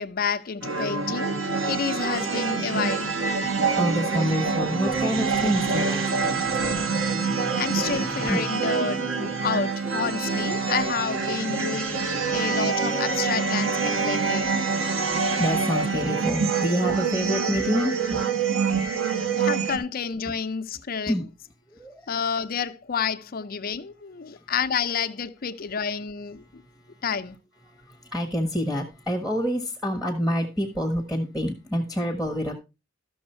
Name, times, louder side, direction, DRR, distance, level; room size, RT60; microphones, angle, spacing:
voice 1, 0.0-3.1 7.5-14.5 19.4-21.1 22.1-26.6 27.0-27.4, left 6 dB, 50° left, 0.5 m, -29 dB
sound 1, 0.6-19.8, right 4 dB, 90° right, 1.4 m, -26 dB
voice 2, 3.8-6.4 8.3-8.4 14.6-18.3 18.7-18.8 21.1-21.3 21.7-22.1 27.7-32.5, equal, 5° right, 1.3 m, -27 dB
13.5 x 6.3 x 4.4 m
head